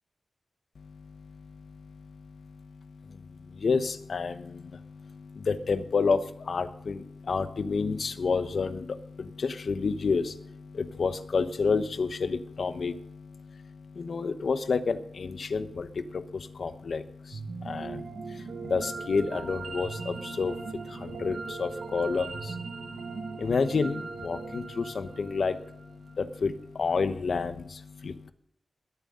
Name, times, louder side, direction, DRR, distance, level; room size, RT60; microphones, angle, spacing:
voice 1, 0.8-28.3, left 4 dB, 75° left, 10 dB, 1.0 m, -31 dB
sound 1, 17.3-26.5, right 4 dB, 80° right, 1.7 m, -39 dB
21.5 x 9.4 x 3.9 m, 0.69 s
cardioid pair, 55°, 0 cm